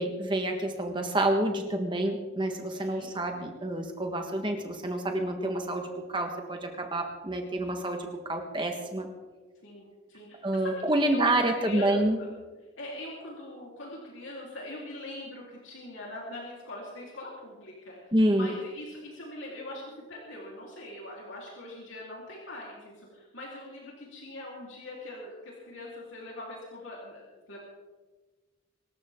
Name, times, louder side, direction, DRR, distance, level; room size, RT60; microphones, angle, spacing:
voice 1, 0.0-9.1 10.4-12.2 18.1-18.5, right 1 dB, 25° right, 4 dB, 1.5 m, -28 dB
voice 2, 2.7-3.1 9.6-12.3 12.8-27.6, left 1 dB, 70° left, -4 dB, 3.8 m, -42 dB
25.5 x 14.0 x 3.7 m, 1.3 s
head